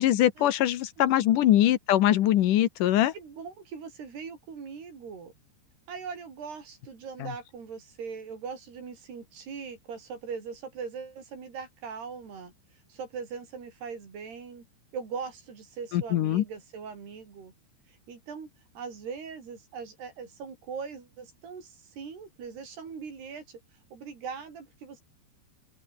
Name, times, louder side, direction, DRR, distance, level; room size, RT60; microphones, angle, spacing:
voice 1, 0.0-3.1 15.9-16.4, left 12 dB, 65° left, 2.2 m, -22 dB
voice 2, 3.1-5.3 5.9-12.5 12.9-14.7 14.9-17.5 17.9-18.5 18.8-23.6 23.9-25.0, right 6 dB, 65° right, 7.0 m, -40 dB
omnidirectional pair, 5.0 m